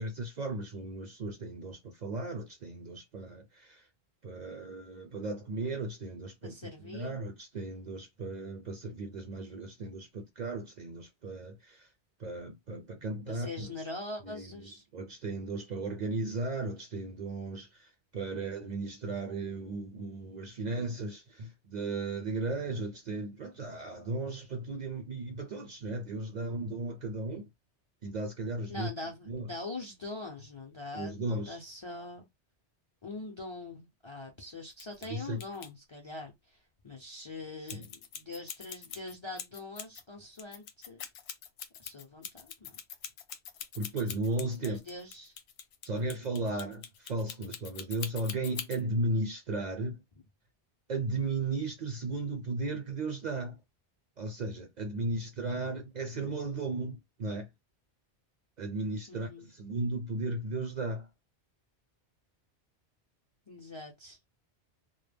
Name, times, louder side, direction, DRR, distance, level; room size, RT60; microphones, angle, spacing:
voice 1, 0.0-3.9 4.2-6.5 6.8-11.9 12.2-13.7 14.2-27.5 28.0-28.9 29.3-29.5 30.9-31.6 35.1-35.4 37.7-37.9 43.7-44.8 45.8-50.0 50.9-53.6 54.2-57.5 58.6-61.1, right 2 dB, 55° right, 0.5 m, -35 dB
voice 2, 6.4-7.2 13.3-14.8 28.7-32.3 33.0-41.0 41.8-42.8 44.6-45.4 45.9-46.1 46.4-46.6 59.1-59.5 63.5-64.2, left 2 dB, 40° left, 0.4 m, -43 dB
sound 1, 34.7-35.1 35.4-35.7 37.7-40.0 40.4-48.8, left 8 dB, 70° left, 0.8 m, -43 dB
2.2 x 2.0 x 3.3 m
omnidirectional pair, 1.1 m